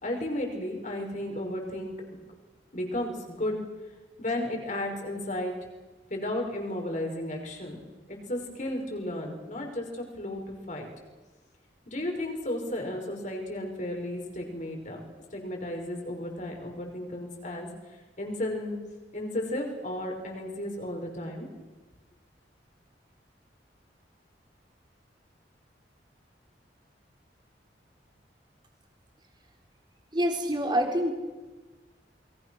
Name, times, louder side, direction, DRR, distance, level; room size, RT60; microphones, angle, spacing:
voice 1, 0.0-2.1 2.7-3.6 4.2-5.6 6.1-7.9 8.3-10.9 11.9-15.0 15.3-17.7 18.2-18.8 19.1-21.5, left 1 dB, 45° left, 2 dB, 5.6 m, -33 dB
voice 2, 30.1-31.1, equal, 25° right, 3 dB, 3.6 m, -26 dB
28.5 x 22.5 x 6.4 m, 1.2 s
head